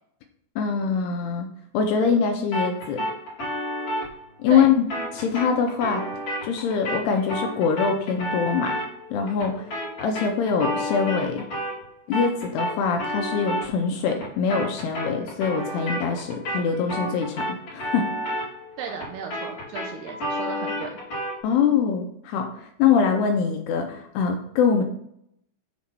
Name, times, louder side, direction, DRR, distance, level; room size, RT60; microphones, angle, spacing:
voice 1, 0.6-1.5 1.7-3.0 4.4-4.8 5.1-6.0 6.4-8.8 9.1-9.7 10.0-11.5 12.1-17.4 17.7-18.1 21.4-24.8, left 6 dB, 80° left, 4 dB, 2.5 m, -23 dB
sound 1, 2.5-11.9 12.1-21.4, equal, 40° left, 2.9 m, -31 dB
voice 2, 18.8-21.0, right 7 dB, 80° right, 3 dB, 2.4 m, -35 dB
7.3 x 3.8 x 5.8 m, 0.71 s
omnidirectional pair, 5.1 m